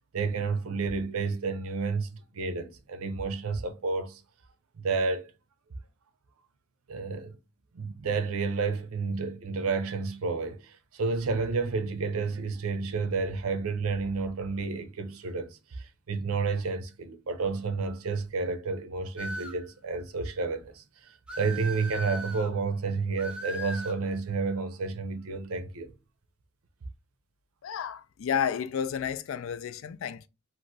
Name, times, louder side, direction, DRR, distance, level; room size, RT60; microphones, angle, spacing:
voice 1, 0.1-4.2 4.8-5.3 6.9-7.4 7.7-25.9, right 4 dB, 85° right, 0.6 m, -31 dB
sound 1, 19.2-19.6 21.3-22.5 23.2-24.0, right 1 dB, 5° right, 0.4 m, -38 dB
voice 2, 27.6-30.3, left 8 dB, 70° left, 0.3 m, -31 dB
3.0 x 2.5 x 2.6 m
head